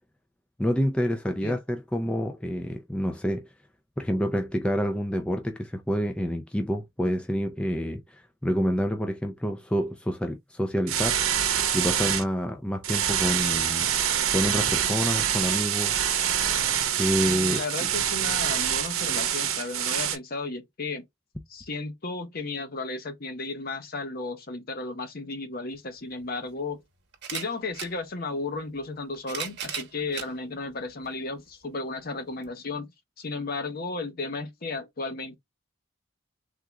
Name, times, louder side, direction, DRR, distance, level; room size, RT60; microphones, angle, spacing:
voice 1, 0.6-3.5 4.0-11.5 11.7-13.9 14.3-16.0 16.9-17.9, equal, 5° left, 0.3 m, -28 dB
sound 1, 10.9-12.2 12.8-20.2, right 9 dB, 85° right, 0.7 m, -26 dB
voice 2, 17.3-21.0 21.5-26.8 27.3-35.4, left 3 dB, 45° left, 0.8 m, -34 dB
sound 2, 25.7-25.8 27.1-27.9 28.9-30.3 31.1-31.2 32.4-32.5, right 7 dB, 55° right, 1.0 m, -36 dB
3.6 x 2.2 x 2.9 m
head